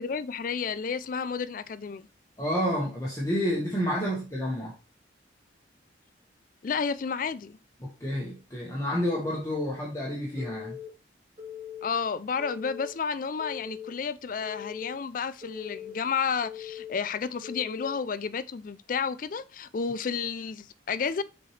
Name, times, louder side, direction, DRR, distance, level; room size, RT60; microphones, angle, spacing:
voice 1, 0.0-2.1 6.6-7.6 11.8-21.2, left 6 dB, 45° left, 0.4 m, -31 dB
voice 2, 2.4-4.7 7.8-10.8, equal, 15° left, 1.4 m, -29 dB
Telephone, 10.4-10.9 11.4-11.9 12.4-12.9 13.4-13.9 14.4-14.9 15.4-15.9 16.4-16.9 17.4-17.9, left 9 dB, 40° right, 2.9 m, -40 dB
6.3 x 4.6 x 3.2 m
head